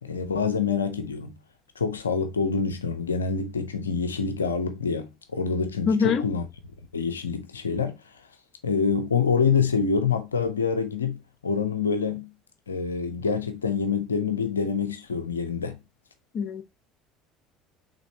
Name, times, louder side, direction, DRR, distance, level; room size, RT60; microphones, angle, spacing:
voice 1, 0.0-1.4 1.8-6.5 6.9-8.0 8.6-12.3 12.7-15.8, left 5 dB, 90° left, 0.5 m, -26 dB
voice 2, 5.9-6.2 16.3-16.6, left 5 dB, 50° left, 0.8 m, -23 dB
5.1 x 3.5 x 2.7 m
hypercardioid pair, 65°, 0 cm